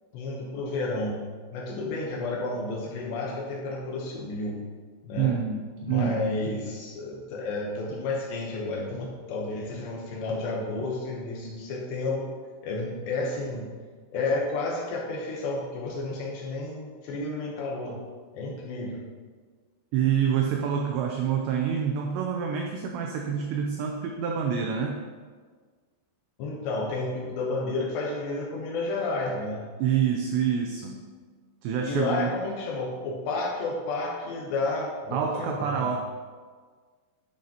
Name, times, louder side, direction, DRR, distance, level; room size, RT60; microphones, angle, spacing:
voice 1, 0.1-1.2 1.5-4.6 5.0-5.4 5.8-12.3 12.6-13.7 14.1-18.0 18.3-19.0 26.4-29.7 31.8-35.9, left 2 dB, 75° left, -2 dB, 2.8 m, -31 dB
voice 2, 5.2-6.4 19.9-25.0 29.8-31.1 31.6-32.4 35.1-36.0, right 8 dB, 85° right, 2 dB, 2.5 m, -27 dB
11.5 x 6.4 x 2.9 m, 1.5 s
omnidirectional pair, 5.7 m